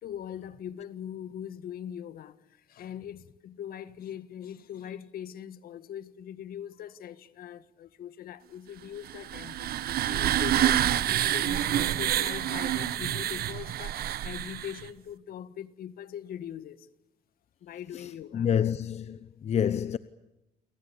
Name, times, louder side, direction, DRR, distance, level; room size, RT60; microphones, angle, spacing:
voice 1, 0.0-9.7 10.1-16.9 17.6-18.5, left 9 dB, 60° left, 1.7 m, -41 dB
sound 1, 9.0-14.9, right 12 dB, 65° right, 1.3 m, -28 dB
voice 2, 17.9-20.0, left 8 dB, 40° left, 0.9 m, -28 dB
29.0 x 23.5 x 7.0 m
cardioid pair, 110°, 17 cm